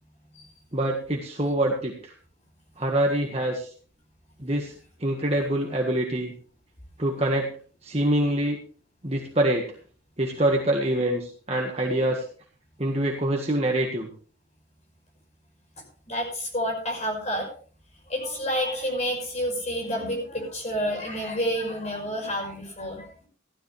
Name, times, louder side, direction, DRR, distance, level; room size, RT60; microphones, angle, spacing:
voice 1, 0.7-2.1 2.8-3.7 4.4-4.7 5.0-6.3 7.0-7.5 7.8-8.6 9.0-9.6 10.2-12.2 12.8-14.1, right 1 dB, 30° right, 0 dB, 1.6 m, -25 dB
voice 2, 16.1-17.5 18.1-23.3, equal, 35° left, 1 dB, 5.6 m, -29 dB
15.0 x 13.0 x 3.4 m, 0.43 s
head